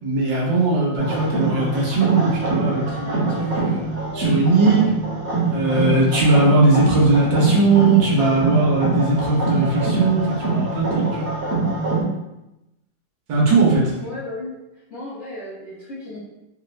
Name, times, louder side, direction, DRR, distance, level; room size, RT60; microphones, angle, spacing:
voice 1, 0.0-5.0 5.5-11.3 13.3-13.9, right 3 dB, 85° right, -4 dB, 1.6 m, -19 dB
sound 1, 1.0-12.0, right 3 dB, 45° right, 1.0 m, -24 dB
voice 2, 14.0-14.6 14.9-16.2, left 2 dB, 60° left, -9 dB, 0.7 m, -34 dB
3.8 x 2.0 x 2.4 m, 0.93 s
omnidirectional pair, 2.0 m